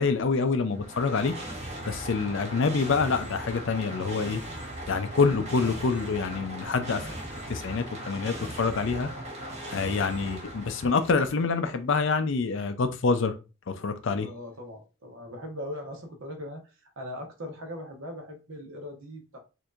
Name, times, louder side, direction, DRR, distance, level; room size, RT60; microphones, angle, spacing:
voice 1, 0.0-1.3 1.9-4.4 4.9-7.1 7.5-9.1 9.7-13.3 13.7-14.3, left 4 dB, 60° left, 0.5 m, -26 dB
sound 1, 0.6-11.5, right 1 dB, 30° right, 0.8 m, -38 dB
voice 2, 14.2-19.4, left 1 dB, 65° right, 1.0 m, -40 dB
4.4 x 2.7 x 2.4 m
head